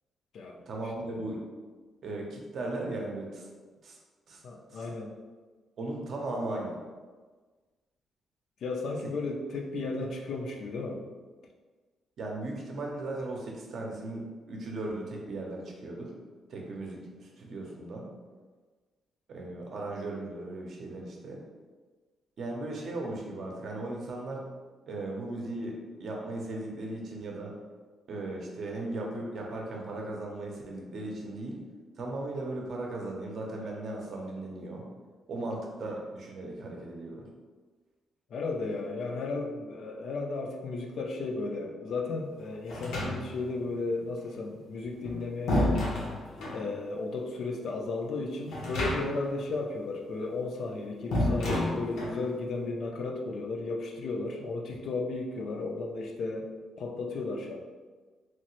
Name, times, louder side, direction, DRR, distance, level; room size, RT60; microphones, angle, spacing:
voice 1, 0.7-1.4 2.0-3.5 3.8-4.0 4.3-4.4 4.7-4.9 5.8-6.8 12.2-16.1 16.5-18.1 19.3-21.4 22.4-24.5 24.9-27.6 28.1-31.6 32.0-34.9 35.3-37.3, right 2 dB, 55° right, -1 dB, 0.6 m, -37 dB
voice 2, 4.4-5.2 8.6-11.0 38.3-45.7 46.5-56.5 56.8-57.6, left 3 dB, 60° left, 2 dB, 0.4 m, -34 dB
sound 1, 42.7-43.5 44.8-46.6 48.5-49.3 49.6-49.7 51.1-52.2, left 1 dB, 85° left, 0.7 m, -30 dB
3.0 x 2.4 x 3.0 m, 1.4 s
cardioid pair, 155°, 0 cm